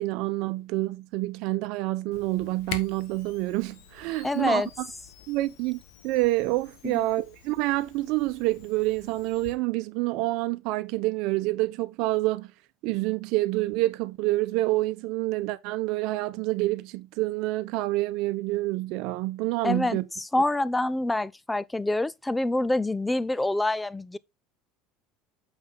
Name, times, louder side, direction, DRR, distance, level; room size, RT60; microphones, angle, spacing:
voice 1, 0.0-4.6 5.3-12.5 12.8-20.0, right 19 dB, 65° right, 0.8 m, -27 dB
Camera, 2.1-9.5, left 8 dB, 70° left, 1.4 m, -46 dB
voice 2, 4.2-4.7 6.8-7.0 19.6-24.2, left 2 dB, 10° left, 0.6 m, -26 dB
7.2 x 5.6 x 4.1 m
hypercardioid pair, 85°, 0 cm